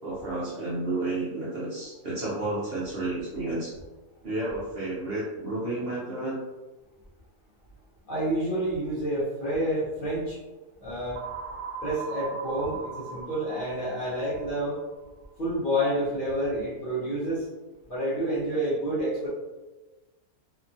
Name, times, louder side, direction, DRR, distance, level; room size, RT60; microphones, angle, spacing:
voice 1, 0.0-3.7 4.2-6.4 18.1-18.2, right 2 dB, 55° right, -7 dB, 0.7 m, -31 dB
voice 2, 8.1-10.4 10.8-11.2 11.8-14.8 15.4-17.5 17.9-19.3, right 1 dB, 50° left, -9 dB, 0.7 m, -29 dB
sound 1, 11.2-15.0, right 4 dB, 85° right, 1.2 m, -39 dB
2.9 x 2.3 x 2.6 m, 1.2 s
omnidirectional pair, 1.6 m